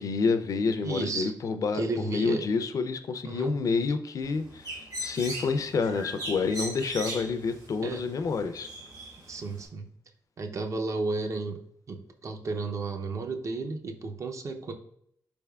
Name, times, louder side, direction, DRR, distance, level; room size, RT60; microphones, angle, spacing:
voice 1, 0.0-8.7, left 4 dB, 55° left, 10 dB, 0.4 m, -28 dB
voice 2, 0.8-1.3 1.7-2.5 3.2-3.6 7.8-8.0 9.3-9.9 10.4-14.7, right 3 dB, 50° right, 5 dB, 0.5 m, -33 dB
Bird, 4.2-9.7, right 1 dB, 65° right, 1.3 m, -39 dB
4.1 x 3.4 x 2.3 m, 0.69 s
cardioid pair, 100°, 7 cm